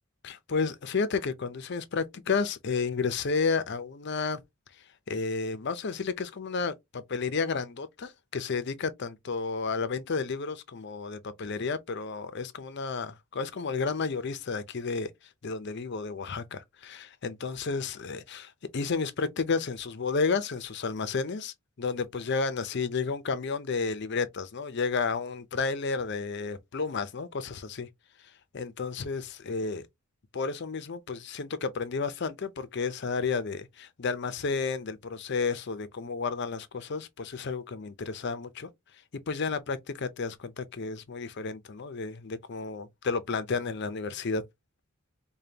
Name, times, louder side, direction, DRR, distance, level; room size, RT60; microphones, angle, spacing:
voice 1, 0.2-4.4 5.1-15.1 15.4-27.9 28.5-29.9 30.3-38.7 39.1-44.4, left 4 dB, 55° left, 0.5 m, -32 dB
5.1 x 2.2 x 2.8 m
head